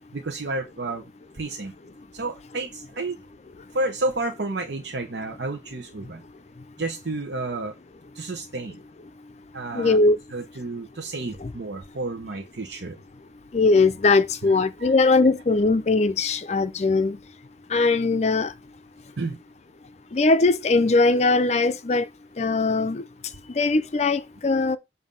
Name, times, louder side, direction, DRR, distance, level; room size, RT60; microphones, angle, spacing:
voice 1, 0.1-1.0 1.3-1.7 2.1-3.2 3.7-6.2 6.8-7.7 8.1-8.8 9.5-10.0 10.3-13.0 14.4-14.5 14.8-15.1 19.2-19.4, right 2 dB, 75° right, 0.8 m, -31 dB
voice 2, 9.7-10.2 11.4-11.5 13.5-17.2 17.7-18.5 20.1-22.1 22.4-23.1 23.5-24.8, left 3 dB, 40° left, 0.5 m, -20 dB
7.4 x 2.7 x 5.2 m
head